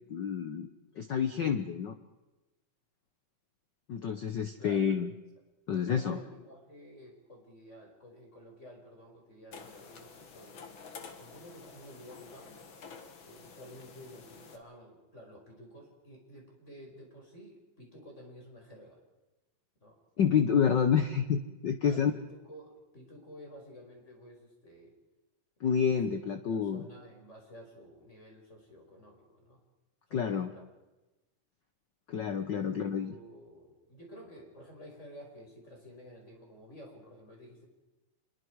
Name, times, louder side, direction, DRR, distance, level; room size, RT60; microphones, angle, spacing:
voice 1, 0.1-0.7 1.0-1.9 3.9-5.1 5.7-6.2 20.2-22.1 25.6-26.8 30.1-30.5 32.1-33.1, left 7 dB, 80° left, 8 dB, 1.0 m, -28 dB
voice 2, 4.6-5.0 5.7-10.7 11.2-12.5 13.2-19.0 19.8-20.0 20.6-21.0 21.8-24.9 25.6-26.2 26.6-29.6 30.1-30.6 32.5-37.7, equal, 20° left, 0 dB, 5.5 m, -52 dB
sound 1, 9.5-14.6, left 5 dB, 45° left, 2.3 m, -50 dB
27.5 x 22.0 x 4.8 m, 1.1 s
omnidirectional pair, 3.5 m